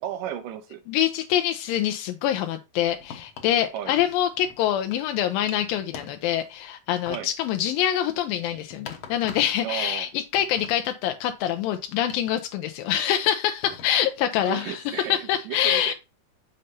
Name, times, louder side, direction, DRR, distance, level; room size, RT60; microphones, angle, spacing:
voice 1, 0.0-0.8 3.7-3.9 7.1-7.3 9.6-10.1 14.5-15.9, right 10 dB, 80° right, 2.1 m, -34 dB
voice 2, 0.9-15.9, left 11 dB, 85° left, 2.4 m, -25 dB
sound 1, 2.9-3.6 4.0-5.1 5.4-6.6 7.1-9.7 10.0-11.6 12.1-12.4 12.9-13.2 13.6-14.1, left 6 dB, 60° left, 1.9 m, -44 dB
6.6 x 6.5 x 2.7 m
omnidirectional pair, 4.1 m